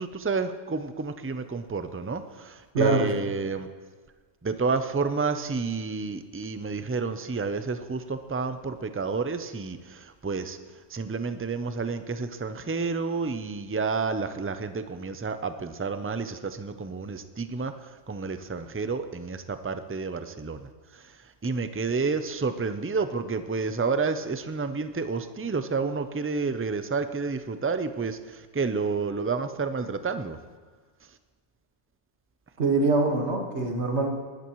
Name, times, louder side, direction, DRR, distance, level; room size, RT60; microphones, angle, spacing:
voice 1, 0.0-3.7 4.4-10.6 10.9-21.2 21.4-30.4, right 4 dB, 20° right, 10 dB, 0.4 m, -30 dB
voice 2, 2.7-3.2 32.6-34.1, right 3 dB, 80° right, 2 dB, 1.9 m, -24 dB
20.0 x 13.0 x 3.1 m, 1.5 s
omnidirectional pair, 1.1 m